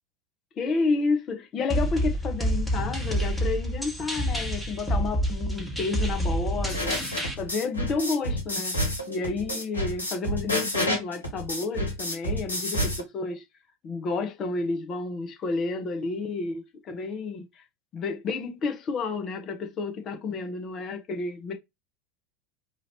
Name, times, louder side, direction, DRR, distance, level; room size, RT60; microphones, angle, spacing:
voice 1, 0.6-7.0 7.4-13.4 13.8-17.5 17.9-21.5, left 4 dB, 35° left, 1.3 m, -30 dB
sound 1, 1.7-7.3, equal, 5° left, 1.5 m, -28 dB
sound 2, 6.7-13.0, equal, 90° left, 1.2 m, -29 dB
4.8 x 2.8 x 2.9 m
figure-of-eight pair, 80°, 0 cm